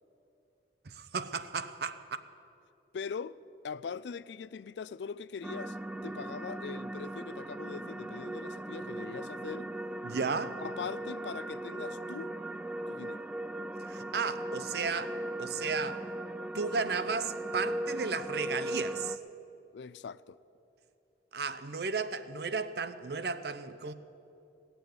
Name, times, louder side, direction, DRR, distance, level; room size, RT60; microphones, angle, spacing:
voice 1, 0.8-2.2 10.0-10.6 13.8-16.0 16.5-19.2 21.3-23.9, right 5 dB, 65° right, 0.7 m, -34 dB
voice 2, 2.9-3.4 3.6-5.8 6.0-9.7 10.6-12.3 12.9-13.3 19.7-20.4, left 6 dB, 80° left, 0.4 m, -41 dB
sound 1, 5.4-19.2, right 1 dB, 5° right, 0.3 m, -38 dB
18.5 x 6.9 x 9.5 m
head